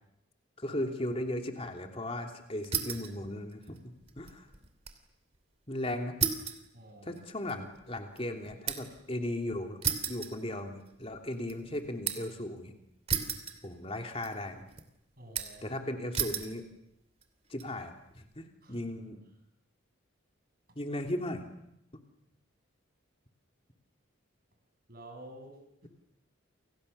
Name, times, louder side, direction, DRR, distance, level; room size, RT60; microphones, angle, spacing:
voice 1, 0.6-4.5 5.7-6.2 7.0-9.8 10.1-12.7 13.3-13.4 13.6-14.6 15.6-16.6 17.5-19.2 20.7-21.4, left 1 dB, 30° left, 4 dB, 3.0 m, -37 dB
sound 1, 2.6-3.2 3.5-5.0 5.3-5.4 6.2-9.0 9.8-11.0 11.3-12.4 13.1-14.0 14.2-14.8 15.3-15.7 16.1-16.5 17.2-17.6, right 7 dB, 30° right, 2.6 m, -35 dB
voice 2, 6.7-7.2 15.2-15.8 18.6-18.8 20.7-20.8 24.9-25.9, right 1 dB, 45° right, 4 dB, 6.7 m, -50 dB
29.5 x 27.0 x 6.9 m, 0.80 s
head